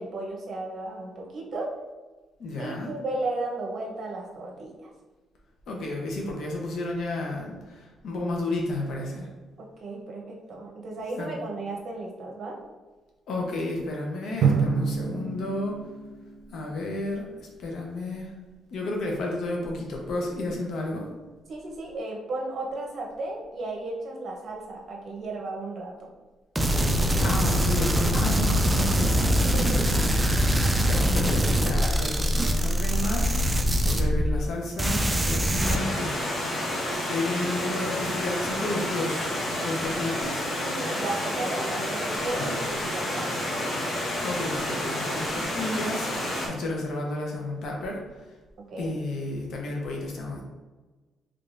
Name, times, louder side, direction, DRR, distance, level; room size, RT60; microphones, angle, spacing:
voice 1, 0.0-1.7 2.6-4.9 9.6-12.6 21.5-26.1 29.5-29.9 40.6-43.7 48.7-48.9, right 2 dB, 60° right, 0 dB, 0.8 m, -34 dB
voice 2, 2.4-2.9 5.7-9.3 11.2-11.3 13.3-15.8 16.5-18.3 18.7-21.1 27.2-29.2 30.8-36.3 36.6-40.5 42.3-42.7 44.2-48.2 48.8-50.4, left 2 dB, 70° left, 0 dB, 0.8 m, -32 dB
Drum, 14.4-17.1, right 5 dB, 85° right, 0.4 m, -27 dB
sound 1, 26.5-34.5 34.8-35.8, equal, 15° right, 0.4 m, -23 dB
Stream, 35.6-46.5, left 1 dB, 50° left, 1.0 m, -30 dB
3.4 x 3.4 x 2.6 m, 1.2 s
cardioid pair, 90°, 0 cm